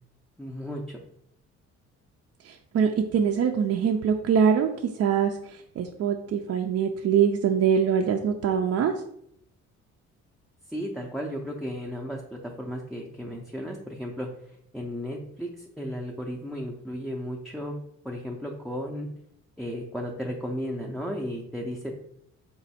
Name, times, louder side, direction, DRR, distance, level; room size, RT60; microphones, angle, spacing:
voice 1, 0.4-1.0 10.7-14.3 14.7-17.8 18.0-19.1 19.6-21.9, equal, ahead, -1 dB, 0.5 m, -34 dB
voice 2, 2.4-4.7 4.9-8.9, right 7 dB, 55° right, 3 dB, 0.4 m, -23 dB
4.1 x 2.3 x 4.1 m, 0.72 s
cardioid pair, 90°, 30 cm